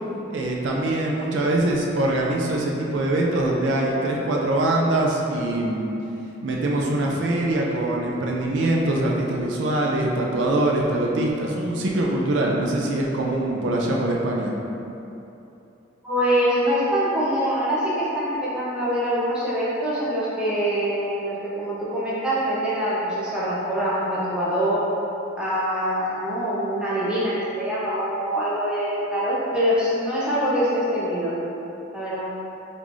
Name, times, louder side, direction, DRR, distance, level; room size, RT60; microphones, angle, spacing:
voice 1, 0.3-5.9 6.4-14.5, right 1 dB, 75° right, -1 dB, 0.4 m, -23 dB
voice 2, 16.0-24.8 25.4-31.3 31.9-32.3, equal, 5° right, -10 dB, 0.6 m, -24 dB
3.1 x 2.5 x 3.7 m, 2.9 s
head